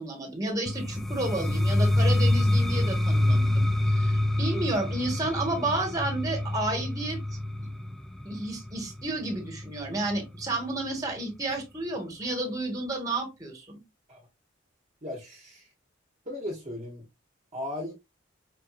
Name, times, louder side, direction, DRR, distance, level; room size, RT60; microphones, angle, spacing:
voice 1, 0.0-4.1 4.4-7.2 8.2-13.8, right 2 dB, 20° right, 1.5 m, -31 dB
sound 1, 0.7-10.4, left 1 dB, ahead, 0.3 m, -26 dB
voice 2, 15.0-15.7 16.3-17.1 17.5-17.9, left 1 dB, 35° right, 1.1 m, -36 dB
4.9 x 2.6 x 2.5 m
head